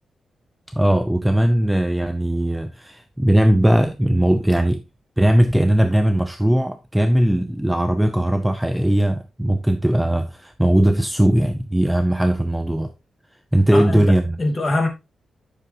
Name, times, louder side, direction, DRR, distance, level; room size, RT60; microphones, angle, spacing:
voice 1, 0.7-4.8 5.2-12.9 13.5-14.4, right 1 dB, 5° right, 0.6 m, -19 dB
voice 2, 13.7-14.9, left 2 dB, 25° left, 2.7 m, -23 dB
10.0 x 6.9 x 2.8 m
wide cardioid pair, 140°, 0 cm